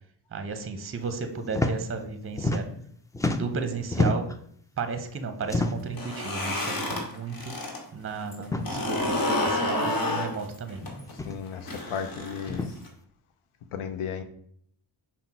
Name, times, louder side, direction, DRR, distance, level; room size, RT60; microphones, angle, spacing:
voice 1, 0.3-2.7 3.2-4.3 4.8-7.5 7.9-10.8, right 4 dB, 25° right, 0.7 m, -34 dB
sound 1, 1.5-1.7 2.0-2.9 3.1-4.4 5.4-6.0 6.9-7.1 7.4-7.5 8.4-8.7 9.8-9.9 11.1-11.4 12.4-12.7, left 2 dB, 10° left, 0.3 m, -28 dB
sound 2, 5.8-7.8 8.1-12.9, left 1 dB, 45° left, 1.4 m, -30 dB
voice 2, 11.2-12.7 13.7-14.2, left 7 dB, 85° left, 0.7 m, -35 dB
5.6 x 2.2 x 4.2 m
cardioid pair, 55°, 48 cm